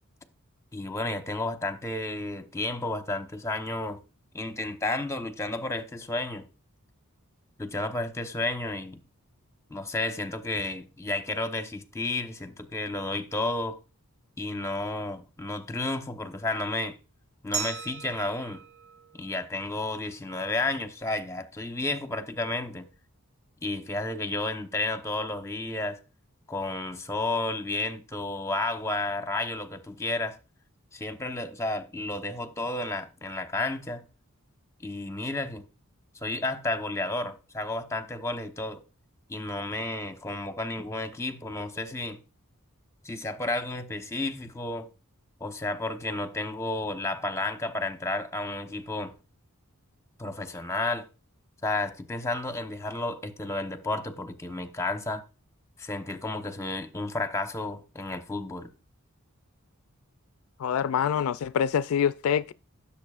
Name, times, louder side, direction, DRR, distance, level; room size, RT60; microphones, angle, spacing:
voice 1, 0.7-4.0 4.3-6.5 7.6-9.0 9.7-13.8 14.4-17.0 17.4-18.6 19.1-22.9 23.6-26.0 26.5-30.4 30.9-34.0 34.8-35.6 36.2-38.8 39.3-42.2 43.0-44.9 45.4-49.1 50.2-51.1 51.6-55.2 55.8-58.7, left 2 dB, 15° left, 0.9 m, -32 dB
Glass, 17.5-20.3, right 6 dB, 70° right, 3.5 m, -38 dB
voice 2, 60.6-62.5, left 8 dB, 70° left, 0.3 m, -25 dB
15.5 x 7.2 x 2.4 m
head